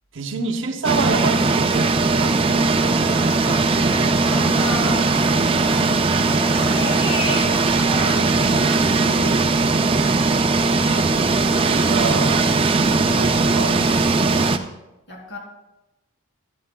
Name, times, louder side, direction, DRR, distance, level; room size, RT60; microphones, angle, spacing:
voice 1, 0.1-2.9 10.9-12.5 13.0-14.6, right 3 dB, 60° right, 4 dB, 0.7 m, -28 dB
sound 1, 0.8-14.6, right 3 dB, 25° right, 0.4 m, -19 dB
sound 2, 2.8-8.0, equal, 10° left, 1.5 m, -34 dB
voice 2, 4.2-5.7 6.2-10.2 10.7-11.3 15.1-15.4, equal, 50° left, -1 dB, 2.6 m, -32 dB
12.0 x 11.5 x 2.2 m, 0.97 s
head